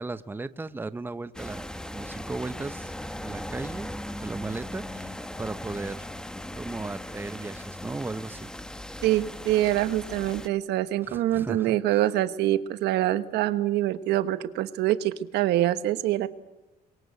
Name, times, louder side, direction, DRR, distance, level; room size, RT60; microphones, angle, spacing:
voice 1, 0.0-2.9 3.2-3.9 4.2-6.1 6.5-8.5 11.0-12.0, right 3 dB, 10° right, 13 dB, 0.9 m, -36 dB
sound 1, 1.3-10.5, left 1 dB, 5° left, 1.2 m, -38 dB
voice 2, 9.0-16.3, right 14 dB, 80° right, 12 dB, 1.3 m, -25 dB
29.0 x 23.0 x 8.3 m, 1.1 s
cardioid pair, 110°, 17 cm